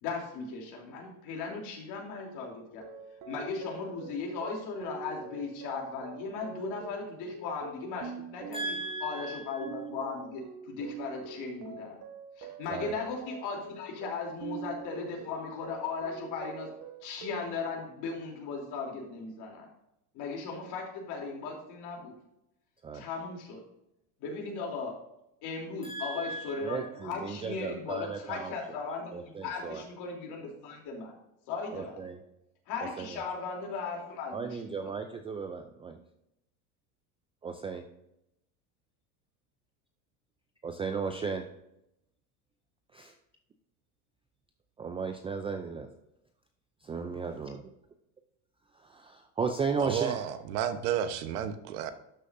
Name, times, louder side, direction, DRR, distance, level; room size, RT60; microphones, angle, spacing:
voice 1, 0.0-2.8 3.3-8.7 9.0-11.9 12.4-16.7 17.0-19.7 20.1-22.1 22.9-23.6 24.2-24.9 25.4-31.1 31.5-32.0 32.7-34.9, left 4 dB, 60° left, 0 dB, 3.2 m, -37 dB
sound 1, 2.7-17.5, right 5 dB, 45° right, 1.4 m, -45 dB
voice 2, 8.5-9.7 12.7-12.9 22.8-23.0 25.8-28.5 29.1-29.8 31.7-32.2 33.0-33.2 34.3-36.0 37.4-37.8 40.6-41.4 42.9-43.1 44.8-45.9 46.9-47.7 48.9-50.2, right 4 dB, 15° right, 6 dB, 0.3 m, -35 dB
voice 3, 49.8-51.9, right 9 dB, 80° right, 10 dB, 1.1 m, -31 dB
12.0 x 6.4 x 2.6 m, 0.83 s
supercardioid pair, 115°, 45 cm